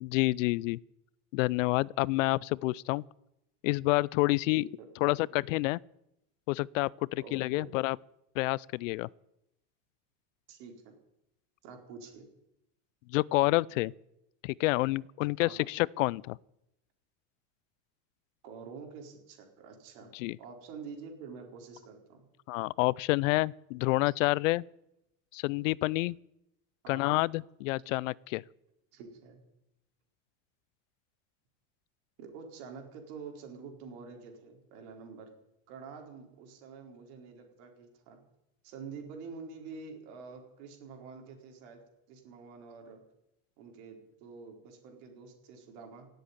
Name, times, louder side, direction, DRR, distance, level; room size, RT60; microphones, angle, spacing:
voice 1, 0.0-0.8 1.3-3.0 3.6-4.7 5.0-5.8 6.5-8.0 8.4-9.1 13.1-13.9 14.4-16.4 20.1-20.4 22.5-24.6 25.3-26.2 26.9-28.4, left 21 dB, 75° left, 0.5 m, -28 dB
voice 2, 4.6-4.9 5.3-5.4 7.2-7.7 10.5-11.0 11.6-12.3 15.4-15.7 18.4-22.3 26.8-27.0 28.9-29.4 32.2-35.3 35.7-38.2 38.6-41.8 42.1-43.0 43.6-46.1, right 5 dB, 60° right, 4.4 m, -47 dB
17.0 x 8.0 x 9.7 m
supercardioid pair, 155°, 38 cm